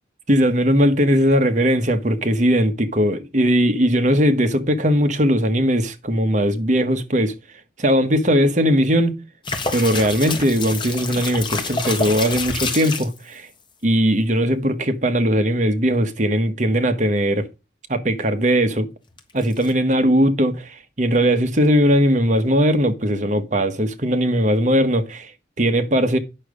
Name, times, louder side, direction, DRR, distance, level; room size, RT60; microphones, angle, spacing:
voice 1, 0.3-7.3 7.8-9.2 9.7-13.5 13.8-17.5 17.9-18.9 19.3-25.3 25.6-26.2, equal, 40° right, 1.2 m, -19 dB
sound 1, 9.4-13.2 19.2-19.7, left 4 dB, 25° left, 1.4 m, -27 dB
9.0 x 6.3 x 5.0 m
head